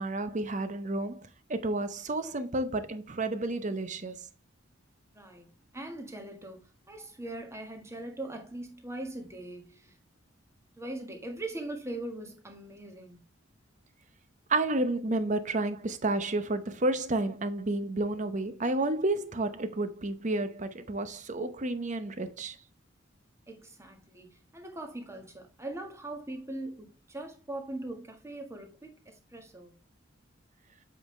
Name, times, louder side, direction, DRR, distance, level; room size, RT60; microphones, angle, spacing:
voice 1, 0.0-4.3 14.5-22.6, right 2 dB, 40° right, 0.8 m, -31 dB
voice 2, 5.1-5.5 5.7-6.6 6.9-9.9 10.8-13.2 23.5-24.3 24.5-29.7, right 1 dB, 15° right, 1.5 m, -41 dB
7.8 x 5.3 x 3.2 m
head